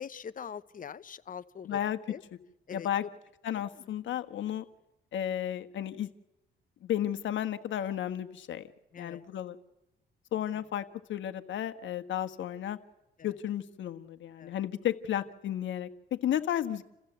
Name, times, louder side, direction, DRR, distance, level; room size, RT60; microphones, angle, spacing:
voice 1, 0.0-1.8 2.1-2.2 2.7-2.9 3.5-3.9 8.9-9.2 13.2-13.3 14.4-14.6, left 7 dB, 45° left, 14 dB, 1.0 m, -43 dB
voice 2, 1.6-2.0 2.7-3.0 3.4-4.6 5.1-6.1 6.8-8.6 9.0-9.6 10.3-10.8 11.1-12.8 13.2-16.9, left 11 dB, 70° left, 10 dB, 1.4 m, -33 dB
28.5 x 15.0 x 8.0 m, 0.93 s
cardioid pair, 90°, 20 cm